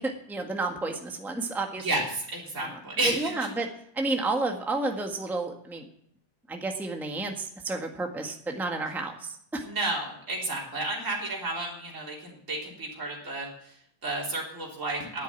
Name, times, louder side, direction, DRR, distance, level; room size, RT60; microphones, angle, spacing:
voice 1, 0.0-1.8 2.6-2.8 3.0-3.7 3.9-5.9 6.5-9.7, right 2 dB, ahead, 3 dB, 1.3 m, -31 dB
voice 2, 1.8-3.3 9.6-15.2, right 2 dB, 40° right, -4 dB, 4.0 m, -32 dB
10.5 x 8.6 x 9.3 m, 0.66 s
omnidirectional pair, 2.1 m